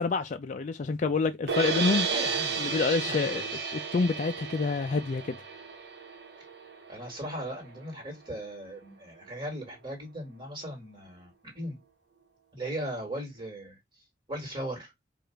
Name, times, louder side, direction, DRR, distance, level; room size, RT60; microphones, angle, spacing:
voice 1, 0.0-2.1 2.6-3.4 3.7-5.4, left 4 dB, 40° left, 0.4 m, -27 dB
sound 1, 1.5-7.6, right 5 dB, 65° right, 1.1 m, -33 dB
voice 2, 2.1-3.7 6.9-11.8 12.5-13.8 14.3-14.9, right 1 dB, 25° right, 1.9 m, -38 dB
4.8 x 2.5 x 4.5 m
head